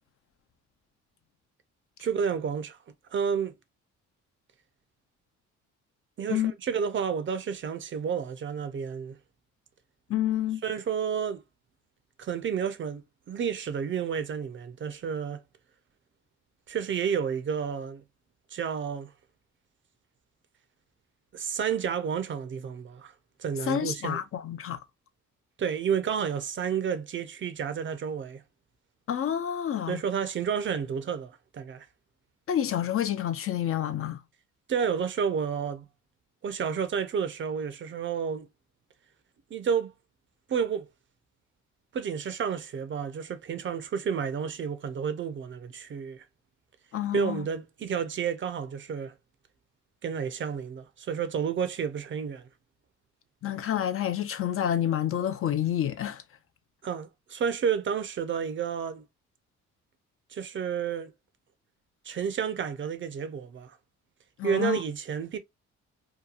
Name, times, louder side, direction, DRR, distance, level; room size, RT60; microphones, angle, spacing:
voice 1, 2.0-2.8 3.1-3.5 6.2-9.2 10.6-11.4 12.2-15.4 16.7-18.0 18.5-19.1 21.3-23.1 23.4-24.2 25.6-28.4 29.9-31.9 34.7-35.9 36.4-38.5 39.5-39.9 40.5-40.9 41.9-46.2 47.1-49.1 50.0-52.5 56.8-59.1 60.3-61.1 62.0-63.8 64.4-65.4, right 7 dB, 40° right, 0.5 m, -30 dB
voice 2, 10.1-10.6 23.7-24.8 29.1-30.0 32.5-34.2 46.9-47.5 53.4-56.2 64.4-64.8, left 10 dB, 45° left, 0.4 m, -28 dB
2.8 x 2.2 x 2.3 m
cardioid pair, 90°, 30 cm